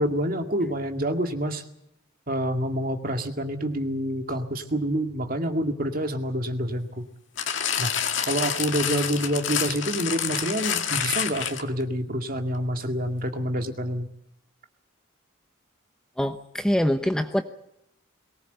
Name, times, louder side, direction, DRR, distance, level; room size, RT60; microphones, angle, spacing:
voice 1, 0.0-1.6 2.3-7.0 7.8-14.1, equal, 45° right, 5 dB, 2.1 m, -27 dB
sound 1, 7.4-11.8 12.5-12.6, left 8 dB, 65° left, 2.0 m, -28 dB
voice 2, 16.2-17.4, equal, 5° left, 7 dB, 0.9 m, -24 dB
22.5 x 19.5 x 8.1 m, 0.77 s
head